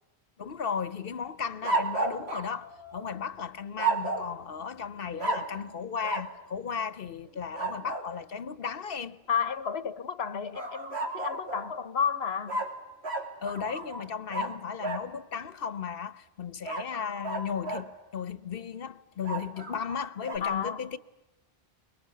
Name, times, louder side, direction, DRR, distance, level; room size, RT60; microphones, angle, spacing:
voice 1, 0.4-9.2 13.4-21.0, left 7 dB, 60° left, 1.3 m, -35 dB
sound 1, 1.6-3.2 3.8-4.4 5.2-5.6 6.0-6.3 7.5-8.1 10.5-11.7 12.5-15.1 16.7-17.9 19.2-20.4, right 2 dB, 90° right, 3.0 m, -33 dB
voice 2, 9.3-12.7 20.4-20.9, left 7 dB, 80° left, 1.4 m, -31 dB
25.0 x 22.5 x 9.3 m
omnidirectional pair, 1.1 m